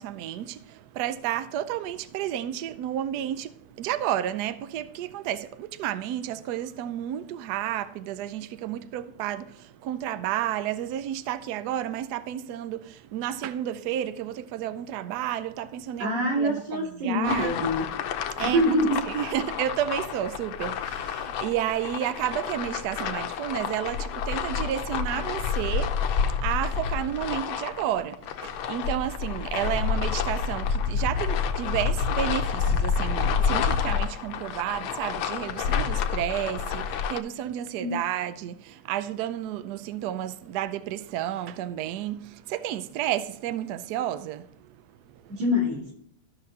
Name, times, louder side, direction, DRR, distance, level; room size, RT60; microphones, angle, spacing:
voice 1, 0.0-17.5 18.3-18.8 19.1-45.4, right 11 dB, 85° right, 0.8 m, -31 dB
voice 2, 16.0-17.9 18.4-19.0 37.8-37.9 45.3-45.9, equal, 55° right, 2.8 m, -25 dB
sound 1, 17.2-37.2, left 6 dB, 75° left, 1.4 m, -29 dB
14.0 x 6.0 x 2.8 m
omnidirectional pair, 2.4 m